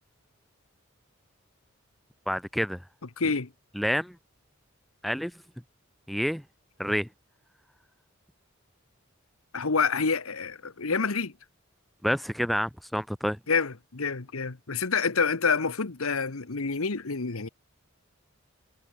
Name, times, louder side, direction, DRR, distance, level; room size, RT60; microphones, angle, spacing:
voice 1, 2.3-2.8 3.7-4.2 5.0-5.3 6.1-6.4 6.8-7.1 12.0-13.4, equal, ahead, 0.4 m, -28 dB
voice 2, 3.2-3.5 9.5-11.3 13.5-17.5, left 5 dB, 90° left, 1.3 m, -27 dB
head